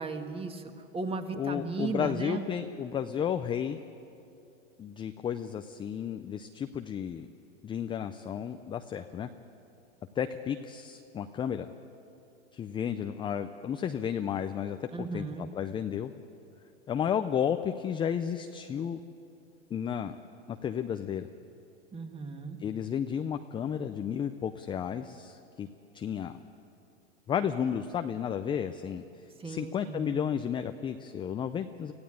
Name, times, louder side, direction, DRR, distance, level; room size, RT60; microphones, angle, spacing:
voice 1, 0.0-2.5 14.9-15.5 21.9-22.6 29.4-30.0, right 4 dB, 15° right, 6 dB, 1.7 m, -36 dB
voice 2, 1.3-3.8 4.8-7.3 7.6-9.3 10.2-11.7 12.5-14.9 15.1-16.1 16.9-19.0 19.7-20.2 20.5-21.3 22.6-25.7 25.9-26.4 27.3-29.0 29.4-31.9, left 8 dB, 15° left, 7 dB, 0.5 m, -32 dB
25.5 x 16.0 x 8.8 m, 2.7 s
hypercardioid pair, 125°, 36 cm